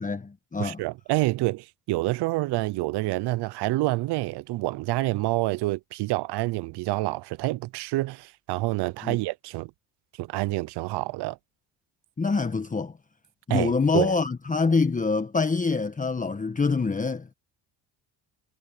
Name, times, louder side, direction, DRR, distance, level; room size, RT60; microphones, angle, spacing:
voice 1, 0.0-0.8 9.0-9.2 12.2-12.9 13.5-17.3, left 4 dB, 20° left, 1.3 m, -25 dB
voice 2, 0.6-9.7 10.2-11.4 13.5-14.1, right 19 dB, 70° right, 0.8 m, -27 dB
supercardioid pair, 85°, 42 cm